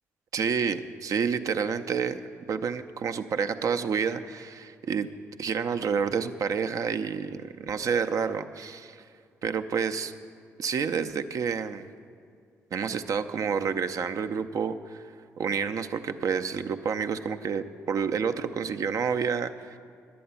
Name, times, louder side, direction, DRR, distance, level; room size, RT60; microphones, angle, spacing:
voice 1, 0.3-2.2 2.5-5.1 5.4-9.0 9.4-10.1 10.6-11.9 12.7-15.0 15.4-19.8, right 6 dB, 50° right, 9 dB, 0.5 m, -29 dB
11.5 x 8.5 x 5.6 m, 2.3 s
figure-of-eight pair, 45°, 8 cm